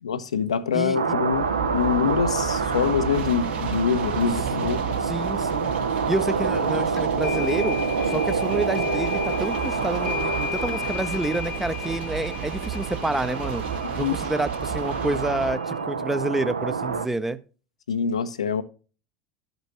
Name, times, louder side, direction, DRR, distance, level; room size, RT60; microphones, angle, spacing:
voice 1, 0.0-4.8 13.9-14.2 17.9-18.6, left 7 dB, 75° left, 0.4 m, -25 dB
voice 2, 0.7-1.2 5.0-5.7 6.1-7.8 8.1-13.6 14.0-17.4, right 2 dB, 5° right, 0.5 m, -28 dB
sound 1, 0.9-17.1, right 5 dB, 80° right, 0.5 m, -28 dB
sound 2, 1.3-15.5, right 9 dB, 40° right, 0.9 m, -34 dB
sound 3, 7.0-15.8, left 9 dB, 25° left, 0.7 m, -35 dB
12.0 x 5.2 x 2.9 m
figure-of-eight pair, 75°, 3 cm